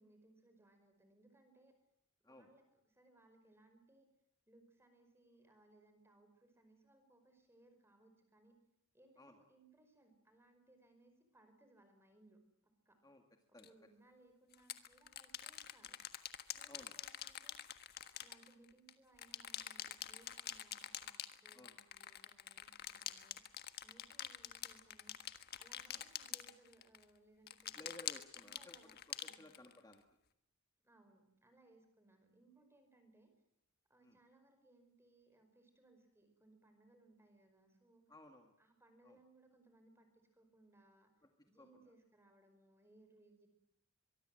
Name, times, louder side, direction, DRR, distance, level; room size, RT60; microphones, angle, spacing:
voice 1, 0.0-1.8 2.2-4.1 4.5-8.6 8.9-13.0 13.5-16.0 16.5-17.6 18.1-23.4 23.8-25.2 25.5-27.9 28.4-29.0 29.2-29.6 30.8-33.3 33.9-38.0 38.6-41.1 41.5-43.5, right 2 dB, 10° right, 7 dB, 5.2 m, -68 dB
sound 1, 13.6-13.7 14.5-18.9 19.2-27.0 27.5-29.9, left 10 dB, 45° left, 1.5 m, -46 dB
voice 2, 27.8-30.0 34.0-34.2 38.1-38.6 39.0-39.2 41.2-41.3 41.6-41.8, left 1 dB, 15° left, 4 dB, 2.0 m, -58 dB
23.5 x 23.0 x 7.9 m, 0.81 s
head